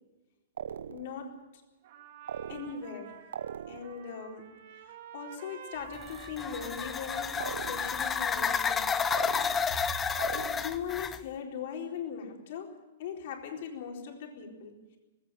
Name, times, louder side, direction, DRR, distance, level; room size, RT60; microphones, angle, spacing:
sound 1, 0.6-1.3 2.3-3.0 3.3-4.1 7.4-8.1 9.1-9.8 10.2-10.9, right 8 dB, 90° right, 0.7 m, -40 dB
voice 1, 0.9-1.4 2.5-3.3 3.7-4.5 4.8-9.0 10.3-15.0, left 7 dB, 50° left, 1 dB, 4.2 m, -40 dB
Trumpet, 1.8-10.3, right 9 dB, 45° right, 2.7 m, -50 dB
sound 2, 5.9-11.2, left 6 dB, 10° left, 0.6 m, -31 dB
19.0 x 16.5 x 9.0 m, 1.1 s
hypercardioid pair, 170°, 0 cm